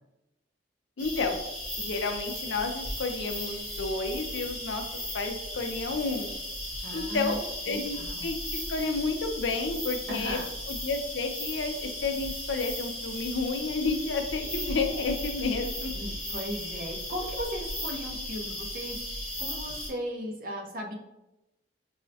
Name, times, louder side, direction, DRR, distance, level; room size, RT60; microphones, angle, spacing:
voice 1, 1.0-1.4 1.8-4.8 5.1-6.3 6.9-7.4 7.7-8.4 8.7-10.4 10.7-15.9, left 3 dB, 75° left, 5 dB, 0.5 m, -31 dB
sound 1, 1.0-19.9, left 1 dB, 5° right, 1.0 m, -36 dB
voice 2, 6.8-7.4 7.7-8.3 10.1-10.5 15.9-20.9, equal, 45° right, 1 dB, 0.6 m, -37 dB
5.4 x 2.1 x 2.7 m, 0.94 s
head